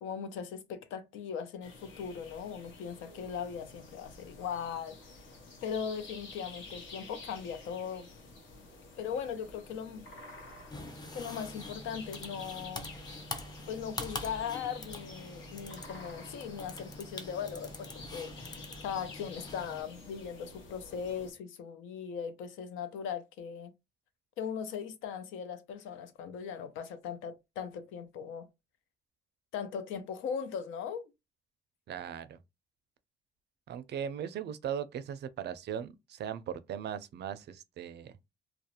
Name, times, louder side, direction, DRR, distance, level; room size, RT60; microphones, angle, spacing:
voice 1, 0.0-5.0 5.6-8.1 9.0-10.0 11.1-12.9 13.7-23.7 24.4-28.5 29.5-31.1, left 7 dB, 90° left, 0.5 m, -39 dB
sound 1, 1.6-21.3, left 3 dB, 70° left, 0.9 m, -50 dB
sound 2, 10.7-19.8, left 2 dB, 20° left, 0.5 m, -44 dB
voice 2, 31.9-32.4 33.7-38.1, right 9 dB, 60° right, 0.4 m, -38 dB
2.4 x 2.0 x 2.8 m
cardioid pair, 90°, 20 cm